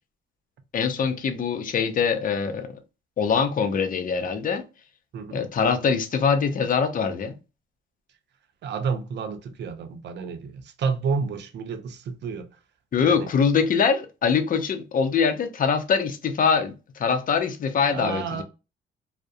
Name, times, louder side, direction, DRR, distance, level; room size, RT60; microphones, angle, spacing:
voice 1, 0.7-2.7 3.2-4.6 5.3-7.4 12.9-18.4, left 6 dB, 45° left, 0.5 m, -23 dB
voice 2, 8.6-12.5 13.0-13.3 17.9-18.4, right 5 dB, 60° right, 0.6 m, -30 dB
2.3 x 2.1 x 2.6 m
cardioid pair, 90°, 20 cm